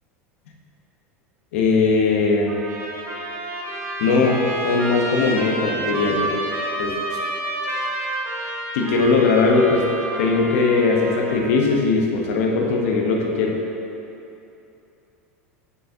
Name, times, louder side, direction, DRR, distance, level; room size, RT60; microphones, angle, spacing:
voice 1, 1.5-2.6 4.0-6.3 6.8-7.0 8.7-9.9 10.2-13.6, left 4 dB, 70° left, 0 dB, 1.0 m, -19 dB
Trumpet, 2.5-11.7, right 1 dB, 35° right, 1.3 m, -29 dB
6.9 x 6.7 x 2.8 m, 2.8 s
hypercardioid pair, 90°, 8 cm